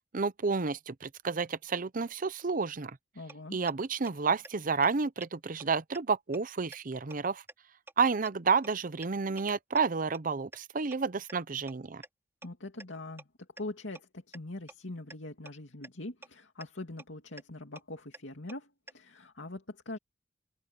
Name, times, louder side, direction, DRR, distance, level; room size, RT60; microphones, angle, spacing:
voice 1, 0.1-3.0 3.5-7.4 8.0-12.0, right 5 dB, 45° right, 0.7 m, -30 dB
voice 2, 3.2-3.6 12.4-13.3 13.6-20.0, left 2 dB, 85° left, 2.5 m, -42 dB
sound 1, 3.3-3.4 3.7-3.8 4.1-4.2 4.4-4.5 4.8-4.9 5.2-5.3 5.6-5.7 5.9-6.0 6.3-6.4 6.7-6.8 7.1-7.2 7.5-7.6 7.9-8.0 8.2-8.3 8.6-8.7 9.0-9.1 9.4-9.5 9.8-9.9 10.1-10.2 10.5-10.6 10.9-11.0 11.3-11.4 11.7-11.8 12.0-12.1 12.4-12.5 12.8-12.9 13.2-13.3 13.6-13.7 13.9-14.0 14.3-14.4 14.7-14.8 15.1-15.2 15.5-15.6 15.8-15.9 16.2-16.3 16.6-16.7 17.0-17.1 17.4-17.5 17.8-17.9 18.1-18.2 18.5-18.6 18.9-19.0, right 2 dB, 15° right, 3.5 m, -47 dB
head